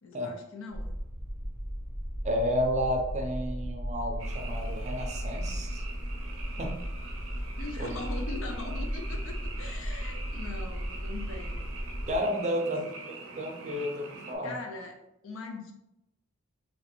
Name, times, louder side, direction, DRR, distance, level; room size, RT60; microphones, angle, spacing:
voice 1, 0.0-0.9 7.6-11.7 12.2-12.7 14.4-15.0 15.2-15.7, left 3 dB, 65° left, 4 dB, 0.6 m, -41 dB
sound 1, 0.7-12.2, equal, 45° left, 1.2 m, -35 dB
voice 2, 2.2-5.8 6.6-6.8 7.8-8.0 12.1-14.6, equal, 35° right, 2 dB, 0.5 m, -31 dB
Frog, 4.2-14.4, right 3 dB, 75° right, 0.6 m, -45 dB
3.1 x 2.9 x 2.9 m, 0.84 s
head